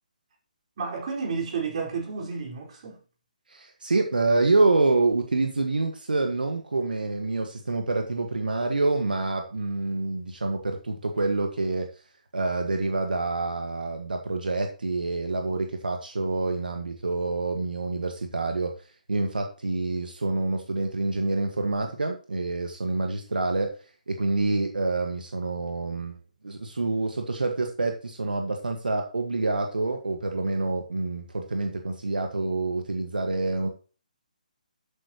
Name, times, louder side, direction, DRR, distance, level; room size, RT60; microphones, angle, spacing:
voice 1, 0.8-3.0, right 5 dB, 50° right, 4.8 m, -31 dB
voice 2, 3.5-11.9 12.3-23.7 24.1-33.7, right 3 dB, 90° right, 1.6 m, -27 dB
11.5 x 8.8 x 3.0 m
hypercardioid pair, 150°, 5 cm